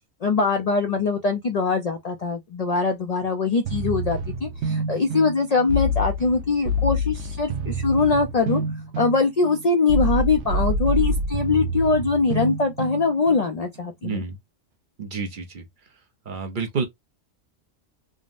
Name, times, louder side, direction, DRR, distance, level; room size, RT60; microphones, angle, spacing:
voice 1, 0.2-8.6 9.0-14.2, left 4 dB, 55° left, 0.4 m, -22 dB
sound 1, 3.7-13.4, right 1 dB, 80° right, 1.0 m, -27 dB
voice 2, 14.0-14.4 15.0-15.6 16.3-16.8, right 5 dB, 55° right, 0.7 m, -29 dB
3.5 x 2.0 x 2.4 m
omnidirectional pair, 1.1 m